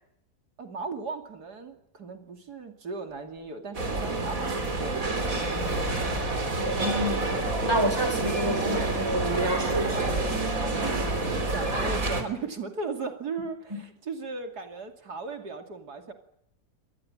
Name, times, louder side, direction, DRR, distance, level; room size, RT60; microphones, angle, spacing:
voice 1, 0.6-5.4 10.6-16.1, right 4 dB, 80° right, 3.2 m, -37 dB
sound 1, 3.1-3.2 5.4-7.9 9.7-11.4, left 3 dB, 80° left, 3.4 m, -42 dB
sound 2, 3.7-12.2, right 2 dB, 55° right, 3.9 m, -28 dB
voice 2, 6.5-7.3 7.6-10.0 13.7-13.8, right 1 dB, 15° right, 3.6 m, -29 dB
25.5 x 19.5 x 8.9 m
omnidirectional pair, 1.7 m